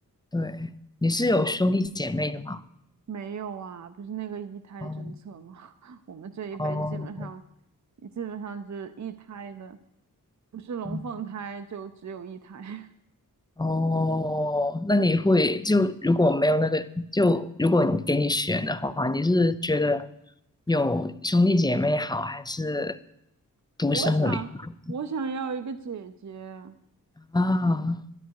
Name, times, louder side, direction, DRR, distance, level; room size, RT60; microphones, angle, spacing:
voice 1, 0.3-0.7 1.0-2.6 4.8-5.2 6.6-7.3 10.9-11.1 13.6-20.1 20.7-23.0 23.8-24.4 27.2-28.0, left 2 dB, 10° left, 0.5 m, -24 dB
voice 2, 3.1-7.4 8.0-9.8 10.5-12.9 23.9-24.5 24.9-26.8, right 6 dB, 55° right, 0.7 m, -36 dB
12.5 x 10.5 x 4.7 m
wide cardioid pair, 115°, 35 cm